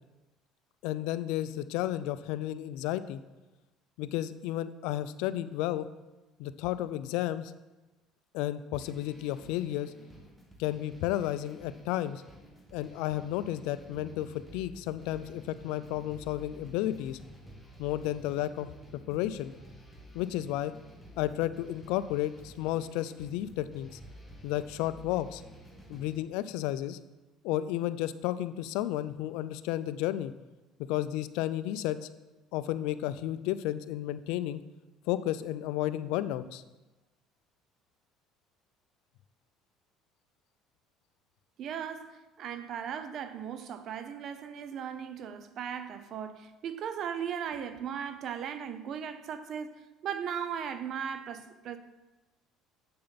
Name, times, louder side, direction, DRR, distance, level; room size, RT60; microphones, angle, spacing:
voice 1, 0.8-3.2 4.0-5.9 6.4-7.5 8.3-9.9 10.6-12.2 12.7-17.2 17.8-18.7 19.1-19.5 20.1-20.7 21.2-24.0 24.4-25.4 25.9-27.0 27.4-30.3 30.9-32.0 32.5-34.6 35.1-36.6, left 13 dB, 80° left, 0.4 m, -32 dB
sound 1, 8.7-26.2, equal, ahead, 1.5 m, -52 dB
voice 2, 41.6-51.8, right 8 dB, 55° right, 0.7 m, -37 dB
7.9 x 6.6 x 4.0 m
cardioid pair, 110°, 0 cm